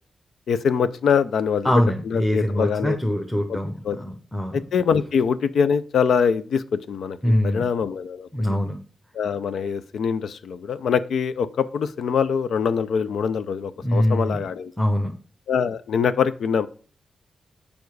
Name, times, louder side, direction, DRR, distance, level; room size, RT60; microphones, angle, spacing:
voice 1, 0.5-1.7 2.1-3.0 3.5-3.6 3.8-4.0 4.5-7.2 7.4-8.3 9.1-14.7 15.5-16.7, left 6 dB, 75° left, 13 dB, 0.5 m, -23 dB
voice 2, 1.6-4.6 7.2-7.6 8.3-8.8 13.8-14.4 14.8-15.1, equal, 5° left, 4 dB, 0.8 m, -23 dB
7.1 x 5.2 x 4.7 m, 0.41 s
wide cardioid pair, 145°, 0 cm